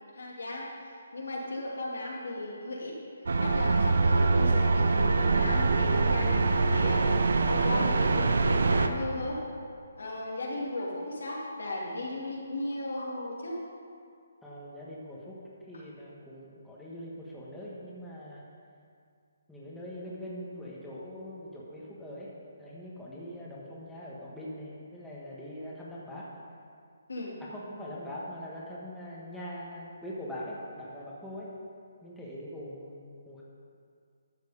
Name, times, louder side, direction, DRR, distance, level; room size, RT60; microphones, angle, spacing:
voice 1, 0.0-3.0 3.4-9.4 10.0-13.6 27.1-27.4, left 2 dB, 80° left, -4 dB, 2.5 m, -36 dB
sound 1, 3.3-8.9, right 3 dB, 70° right, 0.7 m, -24 dB
voice 2, 14.4-15.4 15.6-18.5 19.5-22.3 22.6-26.3 27.4-31.5 32.0-33.4, equal, 5° left, -7 dB, 1.5 m, -42 dB
12.0 x 6.3 x 5.0 m, 2.3 s
figure-of-eight pair, 150°, 0 cm